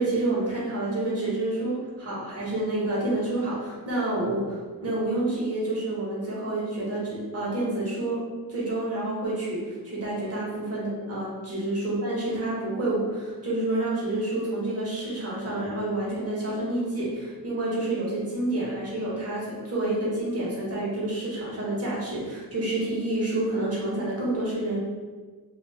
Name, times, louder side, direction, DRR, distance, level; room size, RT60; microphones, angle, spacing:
voice 1, 0.0-8.2 8.5-24.8, right 2 dB, 40° right, -6 dB, 1.1 m, -28 dB
2.4 x 2.0 x 3.2 m, 1.4 s
cardioid pair, 85°, 36 cm